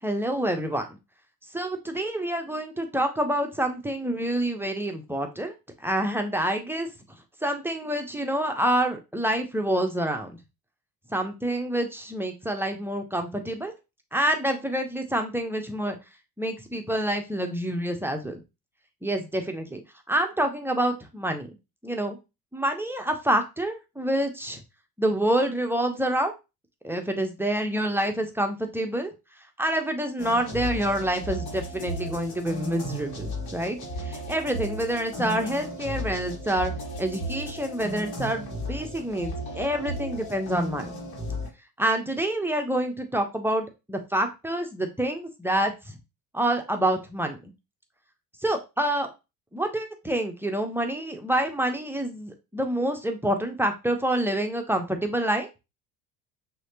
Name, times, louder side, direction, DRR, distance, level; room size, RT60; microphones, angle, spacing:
voice 1, 0.0-0.9 1.5-5.5 5.8-6.9 7.4-10.3 11.1-13.7 14.1-16.0 16.4-18.4 19.0-19.8 20.1-21.5 21.8-22.2 22.5-24.6 25.0-26.3 26.8-29.1 29.6-40.9 41.8-45.7 46.3-47.4 48.4-49.1 49.5-55.5, right 1 dB, 5° right, 4 dB, 0.9 m, -27 dB
sound 1, 30.2-41.5, equal, 50° left, 2.0 m, -34 dB
6.1 x 2.9 x 2.8 m, 0.25 s
figure-of-eight pair, 65°, 49 cm